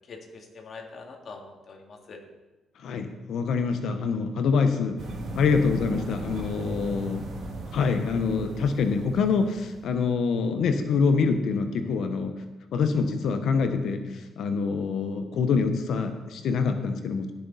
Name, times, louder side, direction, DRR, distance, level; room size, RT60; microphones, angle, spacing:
voice 1, 0.1-2.2, left 4 dB, 50° left, 1 dB, 2.2 m, -44 dB
voice 2, 2.8-5.0 5.4-7.2 7.7-12.4 12.7-17.3, left 5 dB, 70° left, 7 dB, 1.0 m, -25 dB
sound 1, 5.0-10.0, right 2 dB, 65° right, 2.2 m, -37 dB
17.5 x 6.6 x 4.1 m, 1.1 s
cardioid pair, 90°, 0 cm